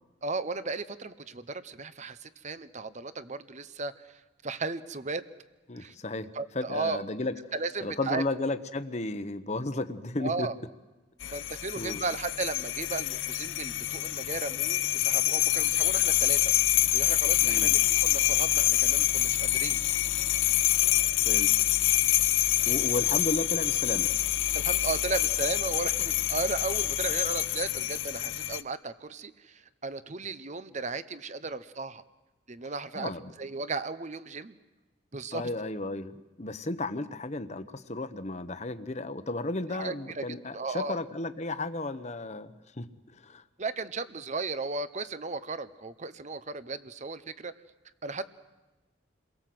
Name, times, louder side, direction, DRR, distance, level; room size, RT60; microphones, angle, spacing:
voice 1, 0.2-5.3 5.7-5.9 6.3-7.0 7.5-8.2 10.2-10.6 11.3-19.8 24.5-32.0 32.5-33.1 33.4-34.5 35.1-35.5 39.7-40.3 40.5-41.0 43.6-47.5 48.0-48.2, right 4 dB, 40° right, 13 dB, 0.9 m, -35 dB
voice 2, 5.7-6.3 6.5-7.3 7.8-10.5 11.2-11.4 11.8-12.0 17.4-17.7 21.2-21.5 22.7-24.1 33.0-33.2 35.3-42.9 43.2-43.4, left 2 dB, 35° left, 10 dB, 1.1 m, -33 dB
sound 1, 11.2-28.6, left 14 dB, 85° left, 0.9 m, -26 dB
29.0 x 22.0 x 7.8 m, 1.1 s
head